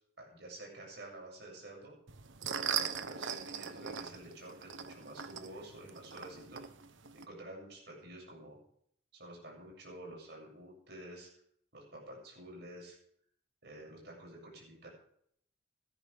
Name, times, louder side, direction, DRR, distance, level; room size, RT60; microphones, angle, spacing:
voice 1, 0.2-1.9 2.7-6.6 7.1-8.6 9.1-11.3 11.7-13.0 13.6-14.9, right 1 dB, 55° right, -1 dB, 7.5 m, -49 dB
sound 1, 2.1-7.2, right 7 dB, 75° right, 1.0 m, -40 dB
18.0 x 13.0 x 3.6 m, 0.66 s
head